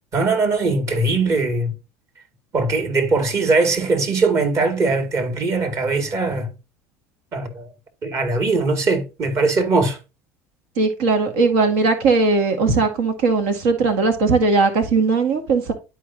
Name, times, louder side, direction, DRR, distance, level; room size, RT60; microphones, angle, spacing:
voice 1, 0.1-1.7 2.5-6.5 7.3-7.7 8.0-10.0, right 3 dB, 45° right, 2.5 m, -20 dB
voice 2, 10.8-15.7, right 4 dB, 80° right, 1.9 m, -18 dB
12.0 x 4.7 x 2.8 m
hypercardioid pair, 75°, 7 cm